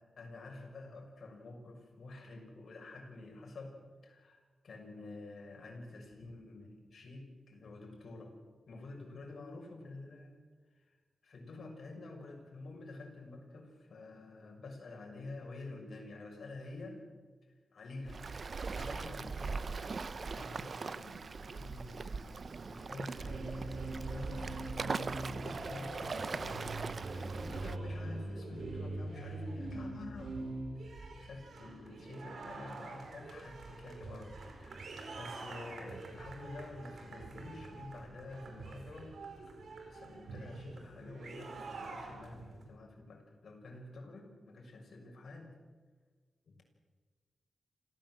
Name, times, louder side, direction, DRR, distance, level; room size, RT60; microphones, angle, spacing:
voice 1, 0.2-4.4 4.6-8.3 8.7-10.4 10.8-10.9 11.2-17.0 17.5-22.4 22.7-30.3 30.8-39.1 39.5-39.6 39.9-45.5 46.5-46.6, left 2 dB, 70° left, 1 dB, 6.5 m, -49 dB
Waves surf, 18.1-27.8, right 4 dB, 55° right, 0.7 m, -40 dB
sound 1, 23.1-42.6, right 2 dB, 75° right, 4.9 m, -44 dB
27.5 x 15.5 x 7.8 m, 1.4 s
cardioid pair, 70°, 0 cm